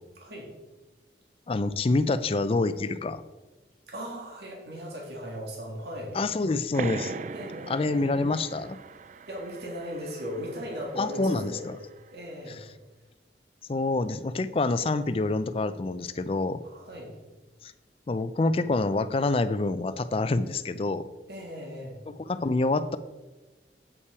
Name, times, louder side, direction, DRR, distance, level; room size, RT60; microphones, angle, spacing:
voice 1, 0.2-0.5 3.9-6.2 7.3-8.0 9.3-11.7 12.1-12.6 16.6-17.2 21.3-22.0, equal, 65° right, -2 dB, 1.8 m, -38 dB
voice 2, 1.5-3.2 6.1-7.1 7.7-8.8 11.0-11.8 13.7-16.6 17.6-17.7 18.1-21.0 22.1-23.0, left 3 dB, 30° left, 13 dB, 0.4 m, -27 dB
sound 1, 6.7-12.0, right 4 dB, 45° right, 0.3 m, -40 dB
8.4 x 5.6 x 4.7 m, 1.2 s
head